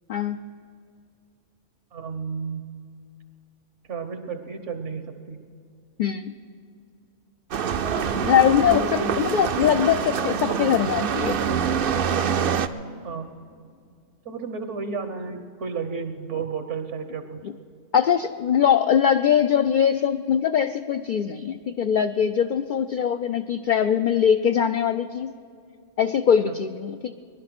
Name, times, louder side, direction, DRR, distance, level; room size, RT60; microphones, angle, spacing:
voice 1, 1.9-2.7 3.9-5.4 7.6-9.2 10.5-10.9 13.0-13.3 14.2-17.4 26.5-26.6, right 4 dB, 70° right, 7 dB, 1.4 m, -33 dB
voice 2, 6.0-6.3 8.2-11.4 17.9-25.3 26.0-27.1, left 8 dB, 60° left, 7 dB, 0.5 m, -22 dB
sound 1, 7.5-12.7, right 7 dB, 55° right, 0.7 m, -25 dB
20.5 x 11.5 x 6.0 m, 2.3 s
omnidirectional pair, 1.3 m